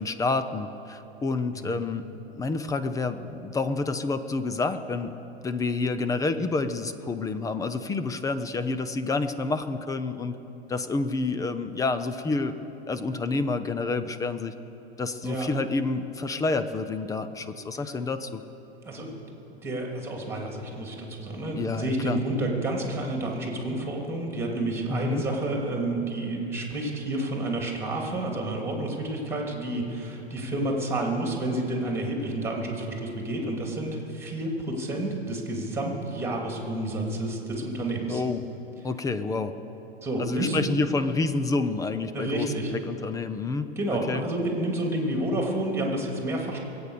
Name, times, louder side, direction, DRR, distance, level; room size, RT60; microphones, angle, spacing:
voice 1, 0.0-2.1 2.4-5.1 5.4-10.3 10.7-12.6 12.9-14.5 15.0-18.4 21.5-22.2 24.9-25.2 38.1-38.4 38.8-39.5 40.2-42.5 42.9-43.7 44.1-44.2, left 3 dB, 10° left, 11 dB, 0.5 m, -28 dB
voice 2, 1.5-1.9 15.2-15.5 18.8-19.2 19.5-38.2 40.0-40.7 42.1-42.7 43.8-46.6, right 1 dB, 10° right, 0 dB, 3.0 m, -30 dB
22.5 x 8.6 x 6.7 m, 3.0 s
hypercardioid pair, 120°, 32 cm